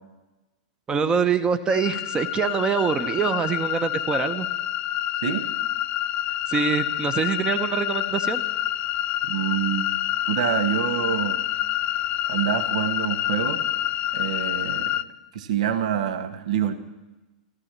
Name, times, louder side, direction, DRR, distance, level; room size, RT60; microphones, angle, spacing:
voice 1, 0.9-4.5 6.5-8.4, right 6 dB, 20° right, 11 dB, 1.0 m, -24 dB
sound 1, 1.7-15.0, left 13 dB, 35° left, 0.6 m, -27 dB
voice 2, 9.2-9.9 10.3-11.4 12.3-13.7 14.1-15.0 15.3-16.7, right 9 dB, 70° right, 10 dB, 1.3 m, -26 dB
15.0 x 13.0 x 7.5 m, 1.1 s
hypercardioid pair, 115°, 4 cm